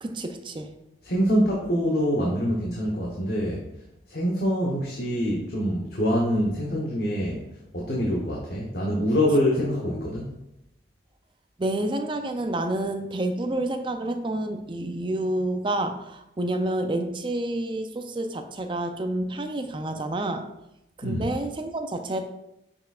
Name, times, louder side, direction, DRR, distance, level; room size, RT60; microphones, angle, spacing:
voice 1, 0.0-0.7 11.6-20.5 21.0-22.2, right 1 dB, 25° right, 6 dB, 0.5 m, -29 dB
voice 2, 1.0-3.7 4.1-7.4 7.7-10.4 21.0-21.3, equal, 55° left, -3 dB, 1.0 m, -25 dB
6.8 x 5.8 x 2.4 m, 0.87 s
head